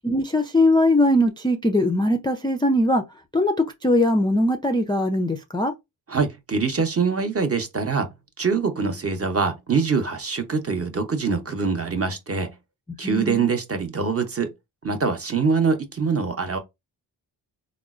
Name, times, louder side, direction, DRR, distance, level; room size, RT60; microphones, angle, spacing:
voice 1, 0.0-3.0 3.3-5.7 13.0-13.5, left 1 dB, 10° left, 0.4 m, -21 dB
voice 2, 6.1-8.1 8.4-12.5 13.0-14.5 14.8-16.6, right 5 dB, 30° right, 0.8 m, -24 dB
3.6 x 2.1 x 2.4 m
supercardioid pair, 40°, 48 cm